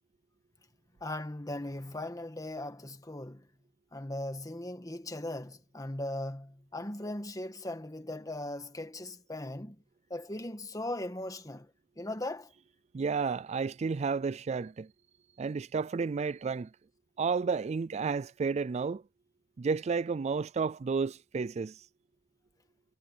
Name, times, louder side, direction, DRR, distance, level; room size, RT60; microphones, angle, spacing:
voice 1, 1.0-3.5 3.9-9.8 10.1-11.7 12.0-12.5, left 1 dB, 20° left, 1.7 m, -38 dB
voice 2, 12.9-14.9 15.4-16.7 17.2-19.0 19.6-21.9, right 5 dB, 35° right, 0.3 m, -31 dB
head